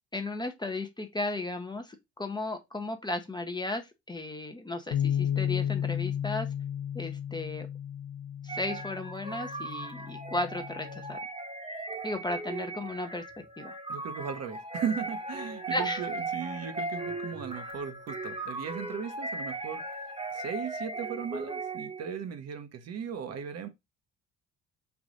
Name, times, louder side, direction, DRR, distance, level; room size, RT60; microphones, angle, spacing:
voice 1, 0.1-3.8 4.1-6.5 6.9-7.7 8.4-11.2 12.0-13.2 13.6-13.7 15.7-16.0, left 2 dB, 15° left, 0.7 m, -35 dB
sound 1, 4.9-11.2, left 9 dB, 60° left, 0.8 m, -33 dB
sound 2, 8.5-22.1, right 2 dB, 15° right, 1.0 m, -38 dB
voice 2, 13.9-19.8 20.3-23.7, right 7 dB, 50° right, 0.8 m, -37 dB
3.5 x 2.5 x 3.7 m
hypercardioid pair, 65°, 33 cm